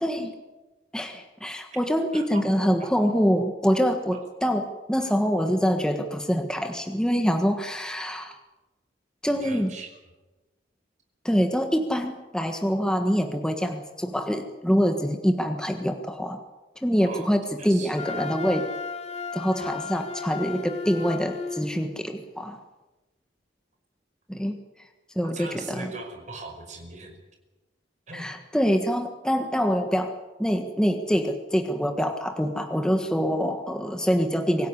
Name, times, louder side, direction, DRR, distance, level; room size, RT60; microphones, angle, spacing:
voice 1, 0.0-0.4 0.9-8.4 9.2-9.7 11.2-16.4 16.8-18.7 19.3-22.6 24.3-24.6 25.1-25.9 28.1-30.1 30.4-34.7, equal, 5° left, 5 dB, 1.5 m, -25 dB
voice 2, 9.4-9.9 17.0-17.3 17.6-17.9 25.3-27.1 28.1-28.3, right 3 dB, 40° right, 4 dB, 5.4 m, -39 dB
Wind instrument woodwind instrument, 17.9-21.7, left 4 dB, 35° left, 2.3 m, -34 dB
25.0 x 16.0 x 9.8 m, 1.1 s
head